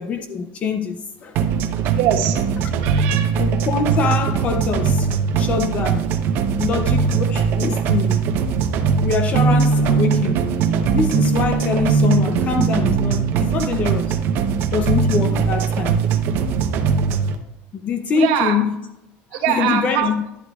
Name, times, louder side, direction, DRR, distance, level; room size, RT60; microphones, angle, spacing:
voice 1, 0.0-1.4 3.4-5.1 5.4-6.1 6.6-8.3 9.0-10.4 10.9-14.1 14.7-16.0 17.8-18.7 19.3-20.2, left 5 dB, 30° left, 0.5 m, -24 dB
sound 1, 1.4-17.3, right 6 dB, 45° right, 0.8 m, -20 dB
voice 2, 1.8-2.4 2.8-3.3 18.1-18.5 19.3-20.1, right 10 dB, 85° right, 1.7 m, -22 dB
11.5 x 11.5 x 2.3 m
cardioid pair, 170°, 5 cm